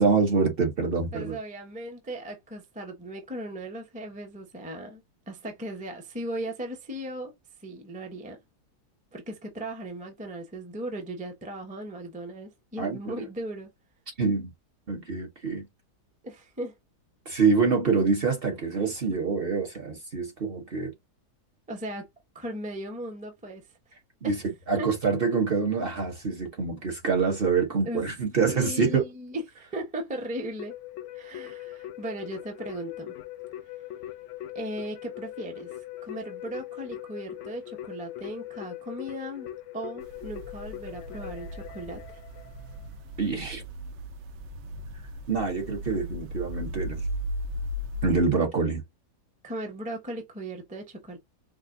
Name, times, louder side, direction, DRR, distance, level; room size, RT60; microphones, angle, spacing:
voice 1, 0.0-1.4 12.8-13.0 14.2-14.5 14.9-15.7 17.3-20.9 24.2-24.4 24.7-29.1 43.2-43.6 45.3-47.0 48.0-48.8, right 4 dB, 45° right, 0.9 m, -25 dB
voice 2, 1.1-7.3 7.6-8.4 9.1-13.7 16.2-16.7 21.7-22.1 22.3-23.6 24.2-24.4 24.8-24.9 27.8-28.0 28.5-30.7 31.1-33.1 34.5-39.5 39.7-42.2 49.4-51.2, right 1 dB, 10° right, 0.5 m, -37 dB
Keyboard (musical), 30.6-43.0, left 13 dB, 70° left, 0.7 m, -41 dB
sound 1, 40.0-48.2, equal, 85° right, 0.6 m, -37 dB
4.9 x 2.4 x 2.5 m
omnidirectional pair, 1.8 m